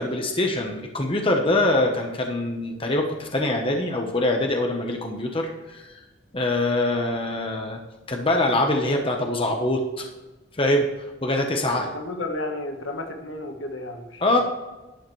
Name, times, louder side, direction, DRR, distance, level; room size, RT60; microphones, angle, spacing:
voice 1, 0.0-5.9 6.3-7.8 8.1-10.1 10.6-10.9 11.2-11.9 14.2-14.4, left 1 dB, 30° left, 2 dB, 1.1 m, -24 dB
voice 2, 11.6-14.4, left 2 dB, 70° left, 4 dB, 1.5 m, -33 dB
11.5 x 8.7 x 3.3 m, 1.1 s
head